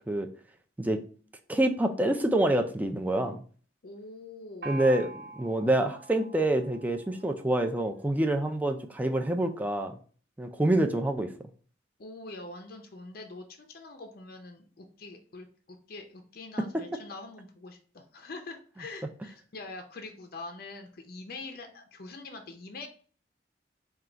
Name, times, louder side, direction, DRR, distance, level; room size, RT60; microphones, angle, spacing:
voice 1, 1.5-3.4 4.6-10.0 10.4-11.3, right 1 dB, 10° right, 4 dB, 0.3 m, -27 dB
voice 2, 3.8-4.8 12.0-22.9, left 3 dB, 50° left, 5 dB, 0.5 m, -44 dB
Gong, 4.6-8.1, right 2 dB, 55° right, 0.7 m, -45 dB
4.5 x 2.3 x 3.8 m, 0.42 s
head